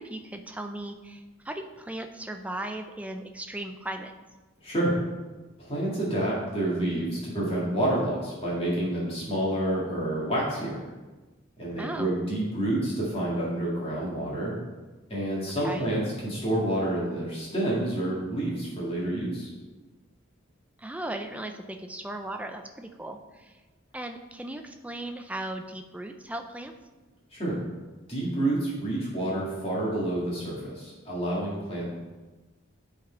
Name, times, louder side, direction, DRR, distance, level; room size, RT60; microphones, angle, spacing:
voice 1, 0.0-4.1 11.8-12.1 15.6-15.9 20.8-23.5 23.9-26.7, right 1 dB, 5° right, 5 dB, 0.4 m, -37 dB
voice 2, 5.6-10.8 11.6-14.5 15.1-19.5 27.3-27.6 28.1-31.9, right 1 dB, 25° left, -6 dB, 1.9 m, -28 dB
11.0 x 4.1 x 4.4 m, 1.2 s
head